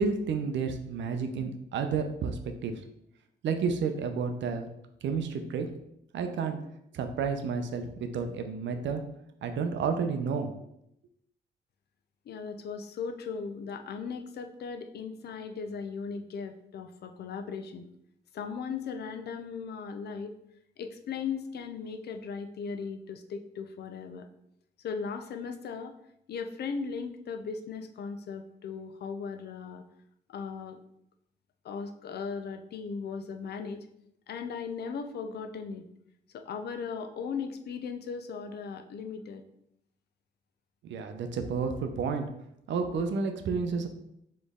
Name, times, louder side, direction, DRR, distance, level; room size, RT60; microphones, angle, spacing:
voice 1, 0.0-2.7 3.4-4.7 5.0-5.7 6.1-6.6 6.9-9.0 9.4-10.5 40.8-42.3 42.7-43.9, right 5 dB, 80° right, 6 dB, 0.6 m, -31 dB
voice 2, 12.3-17.9 18.3-20.3 20.8-24.3 24.8-26.0 26.3-29.8 30.3-30.8 31.6-33.9 34.3-35.9 36.3-39.4, left 5 dB, 60° left, 7 dB, 0.4 m, -37 dB
4.3 x 3.1 x 3.5 m, 0.78 s
wide cardioid pair, 160°, 19 cm